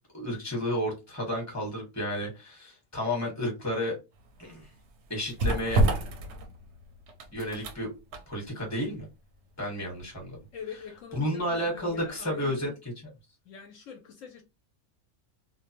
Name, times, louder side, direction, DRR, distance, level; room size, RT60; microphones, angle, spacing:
voice 1, 0.1-4.0 4.4-4.7 5.1-5.8 7.3-7.9 8.3-9.1 9.6-10.4 11.1-12.7, equal, 15° left, 1.0 m, -31 dB
sound 1, 4.1-12.1 12.4-12.6, right 2 dB, 65° right, 0.7 m, -32 dB
voice 2, 10.5-12.8 13.4-14.4, left 7 dB, 70° left, 1.0 m, -43 dB
2.5 x 2.2 x 2.8 m
omnidirectional pair, 1.5 m